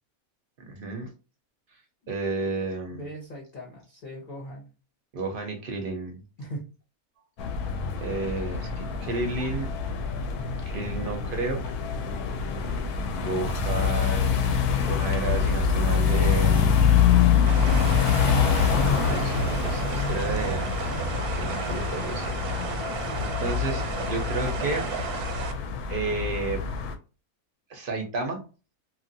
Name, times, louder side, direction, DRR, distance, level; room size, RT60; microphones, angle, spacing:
voice 1, 0.7-1.1 2.1-3.1 5.1-6.2 8.0-9.7 10.7-11.6 13.1-14.4 14.8-16.7 18.5-21.0 21.4-22.3 22.7-22.8 23.2-24.9 25.9-26.7 27.7-28.4, right 3 dB, 55° right, 3 dB, 0.6 m, -32 dB
voice 2, 2.9-4.7 6.4-6.6 22.8-23.4, equal, 45° left, -2 dB, 0.7 m, -40 dB
sound 1, 7.4-26.9, left 6 dB, 90° left, 1.1 m, -25 dB
sound 2, 17.5-25.5, right 6 dB, 90° right, 1.1 m, -34 dB
3.0 x 2.4 x 2.6 m, 0.34 s
omnidirectional pair, 1.6 m